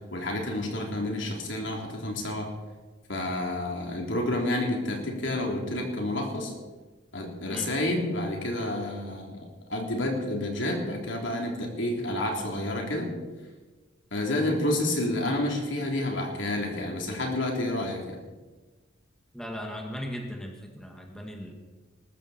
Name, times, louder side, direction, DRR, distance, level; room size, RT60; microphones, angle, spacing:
voice 1, 0.1-2.5 3.1-6.5 7.1-9.4 9.7-13.1 14.1-18.2, left 1 dB, 70° left, 1 dB, 3.4 m, -29 dB
voice 2, 19.3-21.5, equal, 5° left, 1 dB, 1.7 m, -37 dB
20.5 x 13.5 x 4.3 m, 1.3 s
head